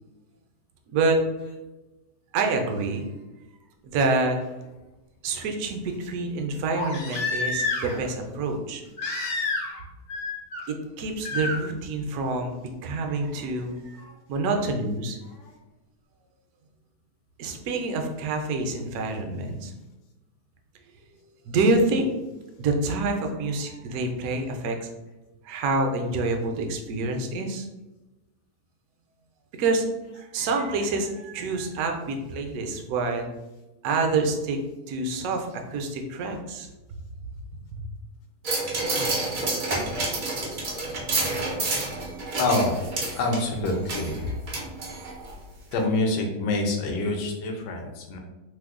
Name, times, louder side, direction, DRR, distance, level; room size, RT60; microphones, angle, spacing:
voice 1, 2.3-3.1 3.8-4.4 5.2-8.8 10.7-12.6 12.8-14.0 14.3-15.2 17.4-19.7 21.5-22.1 22.6-24.9 25.4-27.7 29.6-29.8 30.1-33.3 33.8-34.6 34.9-36.7 37.8-37.9, right 3 dB, 70° right, 3 dB, 0.9 m, -27 dB
Crying sobbing, 4.0-4.1 6.7-8.1 9.0-9.8 10.1-10.6 11.2-11.6 13.2-13.3, left 3 dB, 55° left, 0.7 m, -29 dB
sound 1, 38.4-45.3 45.7-45.8, right 2 dB, 85° right, 0.4 m, -29 dB
voice 2, 42.4-42.7 43.2-44.3 45.7-48.2, left 2 dB, 80° left, 2 dB, 1.2 m, -26 dB
3.0 x 2.0 x 3.5 m, 1.0 s
omnidirectional pair, 1.8 m